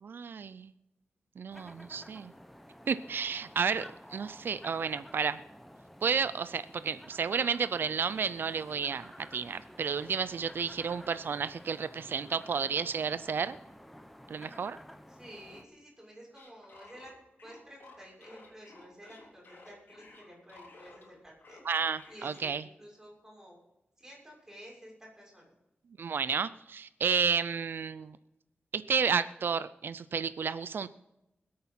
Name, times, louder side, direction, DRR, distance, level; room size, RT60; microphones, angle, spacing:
voice 1, 0.0-0.7 1.4-2.3 2.9-5.4 6.0-13.6 14.3-14.8 21.6-22.6 26.0-28.2 28.7-30.9, right 6 dB, 75° right, 14 dB, 0.5 m, -31 dB
sound 1, 1.5-15.6, equal, 5° left, 1.1 m, -52 dB
voice 2, 15.1-17.1 17.4-21.6 22.1-23.5 24.0-24.9 25.2-25.5, equal, 10° right, -3 dB, 6.5 m, -52 dB
sound 2, 16.3-21.1 21.4-22.4, left 3 dB, 70° left, 3.5 m, -54 dB
20.0 x 8.7 x 5.7 m, 0.91 s
wide cardioid pair, 110°, 4 cm